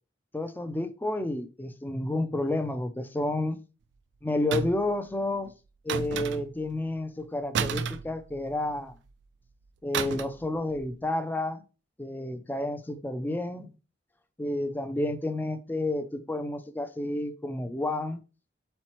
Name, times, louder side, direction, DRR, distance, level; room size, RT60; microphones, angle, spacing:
voice 1, 0.3-3.6 4.2-5.5 5.8-8.9 9.8-11.6 12.0-13.7 14.4-18.2, left 1 dB, 10° left, 0.4 m, -30 dB
sound 1, 4.5-5.0 5.9-6.7 7.5-8.7 9.9-10.5 10.7-10.9, right 6 dB, 65° right, 0.3 m, -31 dB
4.3 x 4.0 x 3.0 m
head